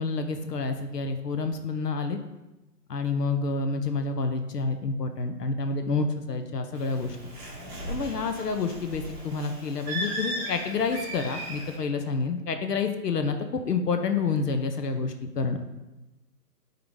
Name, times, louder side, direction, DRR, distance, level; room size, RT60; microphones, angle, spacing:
voice 1, 0.0-2.2 2.9-7.2 7.9-15.6, left 4 dB, 75° left, 6 dB, 0.8 m, -28 dB
Bird, 6.7-11.7, right 1 dB, 15° right, 1.1 m, -37 dB
7.4 x 3.9 x 3.6 m, 1.0 s
hypercardioid pair, 155°, 48 cm